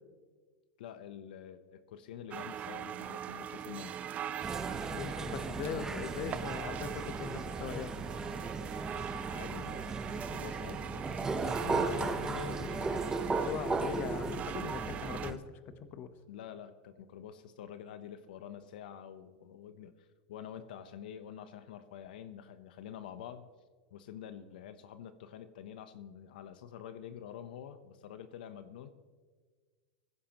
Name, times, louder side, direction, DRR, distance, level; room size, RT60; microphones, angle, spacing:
voice 1, 0.8-4.0 8.9-9.0 9.3-13.1 16.3-23.5 23.9-28.9, left 9 dB, 80° left, 11 dB, 0.9 m, -47 dB
sound 1, 2.3-15.3, right 10 dB, 30° right, 0.4 m, -42 dB
sound 2, 4.4-15.4, right 3 dB, 10° right, 0.8 m, -36 dB
voice 2, 4.9-7.9 11.7-16.1, left 8 dB, 40° left, 11 dB, 1.0 m, -41 dB
20.5 x 15.5 x 3.0 m, 1.5 s
supercardioid pair, 135°, 5 cm